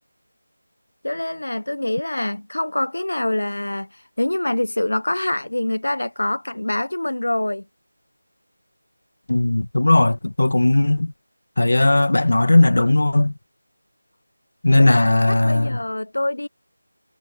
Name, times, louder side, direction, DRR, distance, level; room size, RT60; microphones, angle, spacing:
voice 1, 1.0-7.6 14.8-16.5, left 1 dB, 90° left, 0.7 m, -25 dB
voice 2, 9.3-11.1 11.6-13.3 14.6-15.8, left 2 dB, 70° left, 1.3 m, -17 dB
figure-of-eight pair, 175°, 0 cm